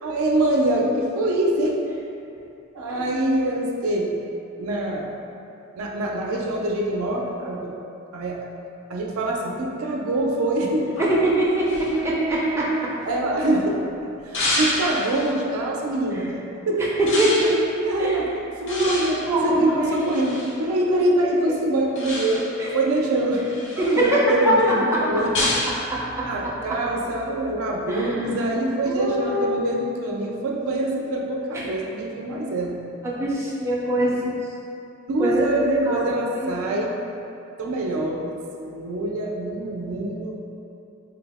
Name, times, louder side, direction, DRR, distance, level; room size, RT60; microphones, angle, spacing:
voice 1, 0.0-1.8 2.7-4.1 4.6-5.1 5.8-7.7 8.1-8.4 8.9-11.0 13.1-16.4 16.7-16.9 17.8-18.3 18.6-25.4 26.2-32.8 35.1-37.0 37.6-40.4, right 1 dB, 80° right, -1 dB, 0.4 m, -24 dB
sound 1, 11.0-13.6 14.3-15.3 17.1-17.6 18.7-20.5 22.0-22.6 23.1-24.1 25.3-25.8, left 1 dB, 60° left, 0.7 m, -29 dB
voice 2, 11.2-11.7 12.0-12.6 16.1-16.2 17.2-18.1 18.8-18.9 19.3-20.0 22.6-22.7 23.8-24.2 25.9-26.3 27.9-28.3 28.9-29.4 33.0-34.4 35.2-35.4 35.9-36.1 36.4-36.5, right 1 dB, 15° right, -6 dB, 0.4 m, -23 dB
3.5 x 2.0 x 3.4 m, 2.7 s
head